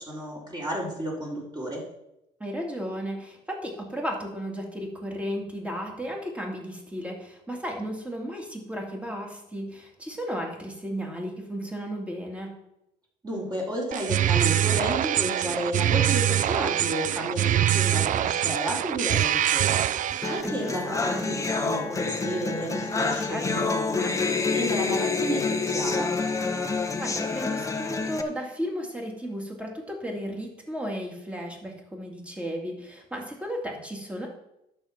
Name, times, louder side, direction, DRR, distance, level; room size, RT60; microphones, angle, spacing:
voice 1, 0.0-1.8 13.2-19.8 20.3-24.1 24.5-26.1, right 1 dB, 25° right, -4 dB, 4.2 m, -32 dB
voice 2, 2.4-12.5 20.4-21.3 23.2-23.7 27.0-34.3, equal, 5° right, 0 dB, 2.7 m, -34 dB
sound 1, 13.9-20.4, right 11 dB, 50° right, 0.4 m, -24 dB
sound 2, 20.2-28.2, left 4 dB, 20° left, 1.1 m, -27 dB
11.0 x 6.8 x 5.9 m, 0.84 s
cardioid pair, 110°, 17 cm